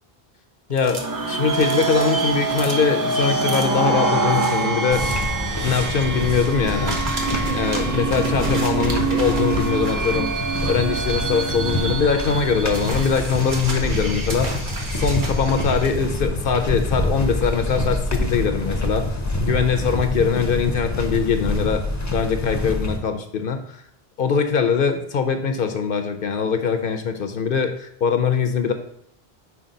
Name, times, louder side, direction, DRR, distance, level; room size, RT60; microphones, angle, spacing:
voice 1, 0.7-5.1 5.6-7.0 7.5-14.6 15.0-21.8 22.1-23.8 24.2-28.7, left 6 dB, 65° left, 7 dB, 0.7 m, -22 dB
sound 1, 0.7-6.6 6.8-16.1, right 3 dB, 55° right, 1.1 m, -33 dB
sound 2, 0.8-13.4, right 4 dB, 35° right, 0.3 m, -25 dB
sound 3, 4.9-23.0, left 1 dB, 20° left, 0.6 m, -26 dB
5.7 x 4.8 x 3.8 m, 0.74 s
omnidirectional pair, 1.0 m